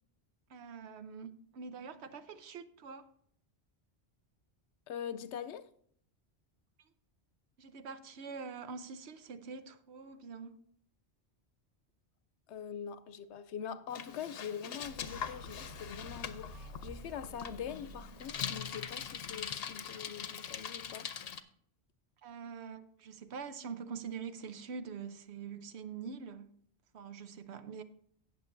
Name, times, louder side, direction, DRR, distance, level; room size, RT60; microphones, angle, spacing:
voice 1, 0.5-3.1 7.6-10.6 22.2-26.6 26.9-27.8, right 5 dB, 75° right, 1.0 m, -45 dB
voice 2, 4.9-5.7 12.5-21.4, left 8 dB, 85° left, 0.9 m, -43 dB
Bicycle, 13.9-21.4, left 7 dB, 65° left, 0.9 m, -42 dB
sound 1, 14.9-19.8, right 1 dB, 45° right, 0.7 m, -52 dB
18.0 x 6.7 x 2.6 m
omnidirectional pair, 1.1 m